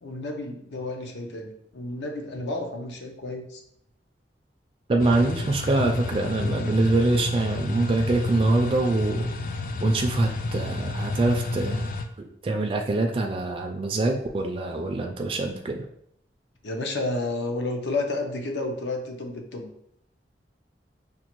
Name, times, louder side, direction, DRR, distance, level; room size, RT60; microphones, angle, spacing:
voice 1, 0.0-3.6 5.1-5.3 16.6-19.7, left 2 dB, 85° left, 3 dB, 0.6 m, -31 dB
voice 2, 4.9-9.2 9.8-11.9 12.2-15.8, right 2 dB, 30° right, 2 dB, 0.3 m, -24 dB
sound 1, 5.0-12.0, left 2 dB, 50° left, 0.3 m, -31 dB
5.1 x 2.2 x 2.9 m, 0.73 s
head